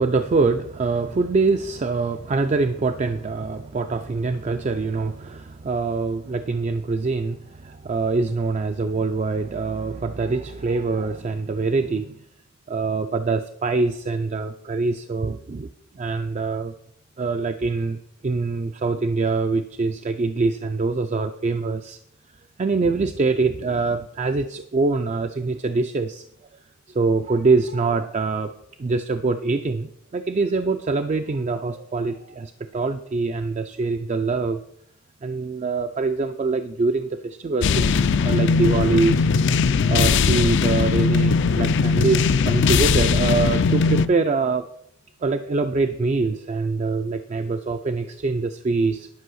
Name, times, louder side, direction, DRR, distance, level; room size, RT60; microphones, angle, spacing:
voice 1, 0.0-12.2 12.7-15.7 15.9-16.7 17.2-22.0 22.6-26.2 26.9-28.5 28.8-34.6 35.2-39.3 39.9-44.7 45.2-49.1, right 3 dB, 35° right, 8 dB, 0.3 m, -24 dB
sound 1, 37.6-44.1, left 5 dB, 55° left, 0.4 m, -19 dB
10.5 x 5.5 x 6.3 m, 0.75 s
head